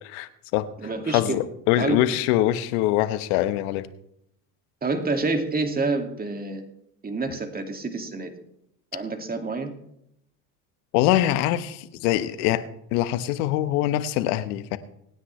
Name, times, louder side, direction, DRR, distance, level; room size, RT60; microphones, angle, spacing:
voice 1, 0.0-0.7 1.1-3.9 10.9-12.6 12.9-14.8, left 13 dB, 70° left, 12 dB, 1.3 m, -23 dB
voice 2, 0.8-1.4 1.7-2.1 4.8-6.6 7.0-8.3 8.9-9.7, right 3 dB, 20° right, 6 dB, 2.2 m, -28 dB
26.0 x 9.8 x 3.3 m, 0.78 s
hypercardioid pair, 85°, 47 cm